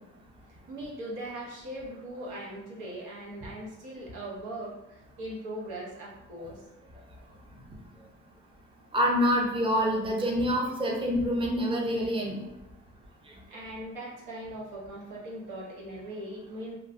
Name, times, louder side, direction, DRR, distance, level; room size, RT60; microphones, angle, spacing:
voice 1, 0.5-6.6 13.5-16.8, right 1 dB, 85° right, -3 dB, 0.9 m, -40 dB
voice 2, 8.9-12.4 13.3-13.4, equal, 15° right, -1 dB, 0.6 m, -26 dB
3.0 x 2.3 x 2.5 m, 0.94 s
cardioid pair, 90°, 30 cm